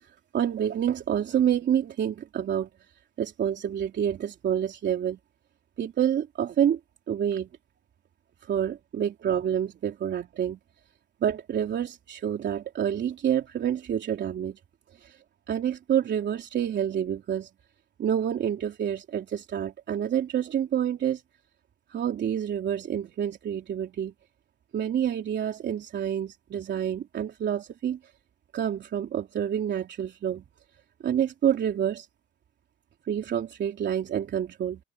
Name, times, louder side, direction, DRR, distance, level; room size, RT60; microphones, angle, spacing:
voice 1, 0.0-2.7 3.2-5.2 5.8-6.8 7.1-7.5 8.4-10.6 11.2-14.6 15.0-17.5 18.0-21.2 21.9-24.1 24.7-28.0 28.5-30.4 31.0-32.1 33.1-34.8, right 9 dB, 65° right, 3.3 m, -28 dB
cardioid pair, 90°, 20 cm